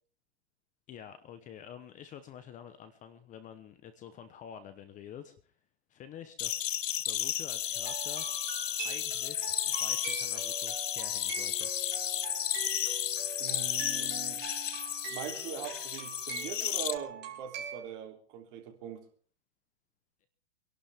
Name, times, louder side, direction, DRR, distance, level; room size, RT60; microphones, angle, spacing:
voice 1, 0.9-5.3 5.9-8.3 8.8-11.7 14.0-14.1, left 9 dB, 20° left, 11 dB, 1.0 m, -48 dB
sound 1, 6.4-16.9, left 10 dB, 75° left, 1.2 m, -33 dB
sound 2, 7.7-17.8, right 7 dB, 25° right, 4.3 m, -43 dB
voice 2, 13.4-14.4 15.1-19.1, right 9 dB, 40° right, 3 dB, 3.3 m, -42 dB
26.0 x 12.0 x 3.6 m, 0.41 s
hypercardioid pair, 140°, 38 cm